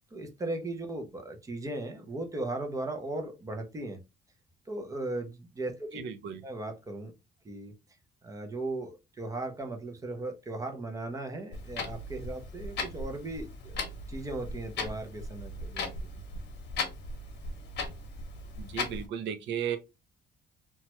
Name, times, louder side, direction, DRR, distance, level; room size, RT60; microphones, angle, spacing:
voice 1, 0.0-4.0 4.7-6.0 6.4-7.1 7.4-7.7 8.2-16.4, right 2 dB, 15° right, 0.5 m, -37 dB
voice 2, 6.0-6.4 18.6-19.8, right 8 dB, 65° right, 0.5 m, -34 dB
Clock, 11.5-19.1, left 3 dB, 65° left, 0.8 m, -38 dB
3.0 x 2.2 x 2.9 m
cardioid pair, 175°, 20 cm